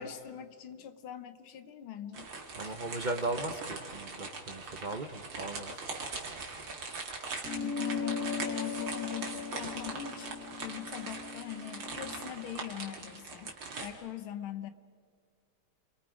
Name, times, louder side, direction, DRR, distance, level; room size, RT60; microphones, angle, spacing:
voice 1, 0.0-2.3 2.6-2.8 7.6-13.5 13.8-14.7, left 10 dB, 80° left, 10 dB, 1.9 m, -43 dB
sound 1, 2.1-13.9, right 4 dB, 65° right, 2.9 m, -41 dB
voice 2, 2.5-5.7, right 2 dB, 35° right, 7 dB, 0.7 m, -37 dB
sound 2, 7.4-12.2, left 6 dB, 55° left, 1.2 m, -37 dB
29.0 x 23.0 x 5.1 m, 2.2 s
omnidirectional pair, 2.2 m